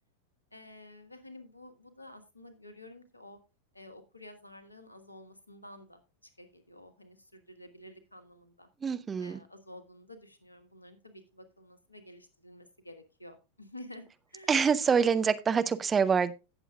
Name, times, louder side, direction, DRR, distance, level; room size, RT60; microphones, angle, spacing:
voice 1, 0.5-3.4 3.7-8.7 9.2-14.0 14.3-14.5, left 1 dB, 85° left, 10 dB, 1.5 m, -51 dB
voice 2, 8.8-9.4 14.5-16.3, right 6 dB, 20° right, 12 dB, 0.7 m, -26 dB
17.0 x 7.0 x 2.3 m, 0.27 s
figure-of-eight pair, 90°, 0 cm